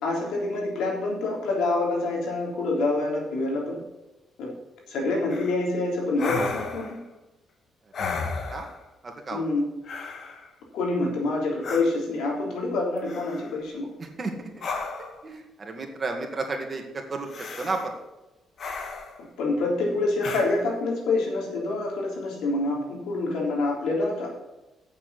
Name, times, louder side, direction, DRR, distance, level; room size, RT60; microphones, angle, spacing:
voice 1, 0.0-3.8 4.4-4.5 4.9-7.0 9.3-9.7 10.7-13.9 19.4-24.3, left 2 dB, 85° left, -1 dB, 3.4 m, -26 dB
sound 1, 5.3-5.6 6.2-7.0 7.9-8.8 9.8-10.5 11.6-11.8 13.0-13.6 14.6-15.2 17.3-17.9 18.6-19.2 20.2-20.5, left 4 dB, 55° left, 1.5 m, -33 dB
voice 2, 9.0-9.4 14.0-14.7 15.2-17.3 17.6-17.9, right 3 dB, 35° right, 3 dB, 2.0 m, -32 dB
8.7 x 7.0 x 7.0 m, 1.0 s
cardioid pair, 90°, 0 cm